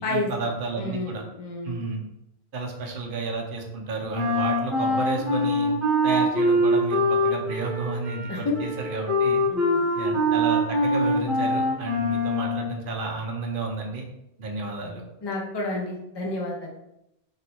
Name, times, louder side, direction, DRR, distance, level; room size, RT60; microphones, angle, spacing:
voice 1, 0.0-1.2 1.6-2.0 2.5-5.7 6.0-9.4 9.9-14.0 14.4-15.0, right 3 dB, 60° right, 1 dB, 0.8 m, -31 dB
voice 2, 0.8-1.8 8.3-8.6 9.5-9.9 15.2-16.7, left 2 dB, 30° left, -2 dB, 0.5 m, -30 dB
Wind instrument woodwind instrument, 4.1-12.7, equal, ahead, 1.0 m, -24 dB
3.1 x 2.6 x 2.8 m, 0.87 s
omnidirectional pair, 1.1 m